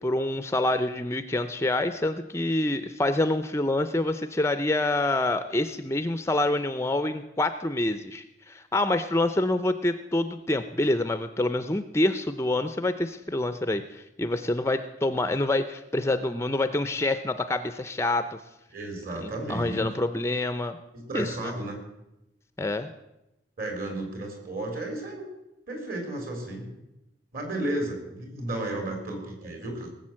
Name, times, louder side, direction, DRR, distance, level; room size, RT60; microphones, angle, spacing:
voice 1, 0.0-18.4 19.2-20.8 21.1-21.5 22.6-22.9, left 2 dB, 15° left, 10 dB, 0.5 m, -27 dB
voice 2, 18.7-19.8 20.9-21.8 23.6-25.2 25.7-26.7 27.3-29.9, right 1 dB, 50° right, 3 dB, 4.2 m, -33 dB
18.5 x 7.9 x 7.5 m, 0.92 s
head